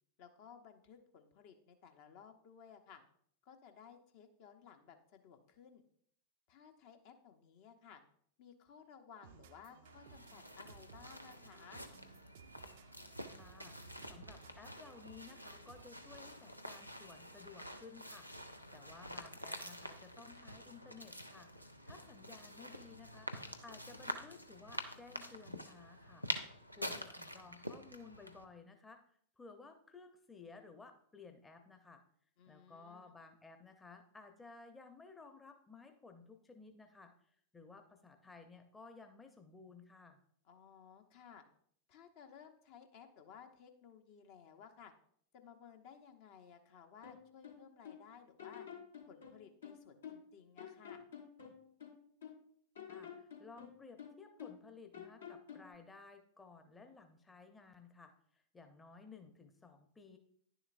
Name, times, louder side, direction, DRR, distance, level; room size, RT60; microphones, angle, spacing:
voice 1, 0.2-3.0 3.4-5.8 6.5-8.0 8.4-11.8 32.4-33.2 40.4-41.4 41.9-44.9 45.3-48.7 49.0-51.0, left 7 dB, 45° left, 5 dB, 0.9 m, -58 dB
sound 1, 9.2-16.1, right 8 dB, 55° right, 0.5 m, -61 dB
sound 2, 9.9-28.4, equal, 90° left, 0.6 m, -47 dB
voice 2, 13.4-26.3 26.8-29.0 29.4-32.0 32.5-40.2 52.9-60.2, left 4 dB, 15° left, 6 dB, 0.8 m, -56 dB
sound 3, 47.0-48.0 48.4-50.3 50.6-52.4 52.7-54.7 54.9-55.7, left 8 dB, 65° left, 1.3 m, -51 dB
10.5 x 6.9 x 2.6 m, 0.64 s
figure-of-eight pair, 90°, 0 cm